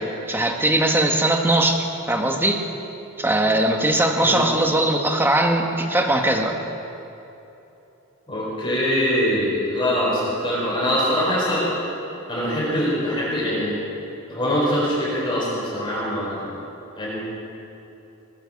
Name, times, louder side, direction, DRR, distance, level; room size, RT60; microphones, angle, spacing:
voice 1, 0.3-2.6 3.2-6.6, right 1 dB, 10° right, 2 dB, 1.3 m, -20 dB
voice 2, 8.3-11.6 12.3-13.8 14.3-16.5 17.0-17.2, equal, 25° left, -7 dB, 4.6 m, -23 dB
20.5 x 10.0 x 7.0 m, 2.9 s
head